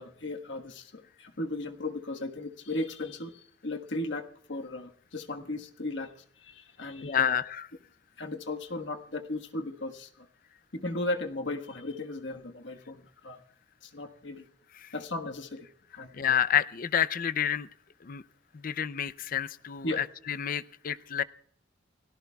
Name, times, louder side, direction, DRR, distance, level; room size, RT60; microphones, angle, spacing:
voice 1, 0.0-7.4 8.2-10.3 10.7-13.4 13.8-14.5 14.9-15.7 15.9-16.4 19.8-20.0, left 2 dB, 65° left, 4 dB, 1.4 m, -36 dB
voice 2, 7.0-7.7 14.8-14.9 16.2-17.7 18.0-18.2 18.5-21.2, left 9 dB, 45° left, 16 dB, 0.5 m, -29 dB
29.0 x 17.0 x 2.3 m, 0.63 s
head